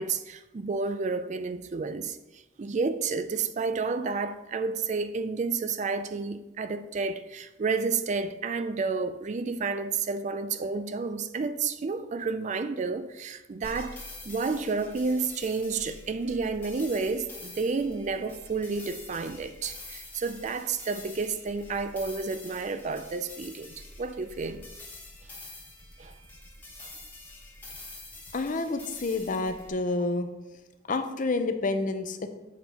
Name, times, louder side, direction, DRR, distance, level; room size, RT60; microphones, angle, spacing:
voice 1, 0.0-14.0 14.2-24.6 26.0-26.1 26.8-26.9, right 4 dB, 35° right, 0.4 m, -31 dB
sound 1, 13.6-29.7, left 2 dB, 10° left, 1.3 m, -46 dB
voice 2, 28.3-30.3 30.9-32.3, left 3 dB, 40° left, 0.6 m, -29 dB
7.4 x 4.4 x 5.3 m
head